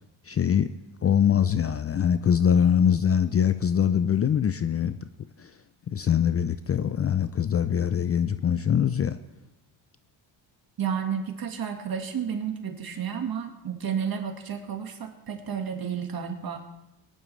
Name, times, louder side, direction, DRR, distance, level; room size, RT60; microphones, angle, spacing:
voice 1, 0.3-0.7 1.0-5.0 5.4-5.5 5.9-9.2, left 8 dB, 30° left, 12 dB, 0.5 m, -23 dB
voice 2, 10.8-16.6, right 7 dB, 50° right, 4 dB, 1.8 m, -31 dB
19.5 x 11.0 x 3.3 m, 0.95 s
cardioid pair, 90°, 47 cm